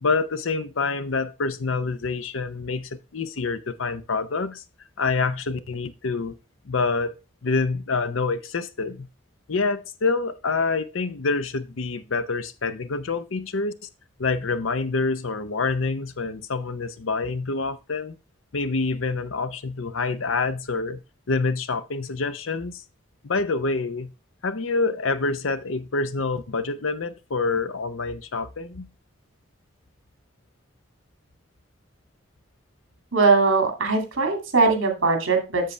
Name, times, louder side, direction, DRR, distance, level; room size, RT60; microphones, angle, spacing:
voice 1, 0.0-4.6 5.0-6.3 6.7-7.1 7.4-9.1 9.5-13.7 14.2-18.1 18.5-21.0 21.3-22.8 23.2-24.1 24.4-28.9, left 4 dB, 85° left, 0.7 m, -26 dB
voice 2, 33.1-35.7, right 4 dB, 90° right, 2.3 m, -20 dB
7.7 x 6.9 x 3.3 m
head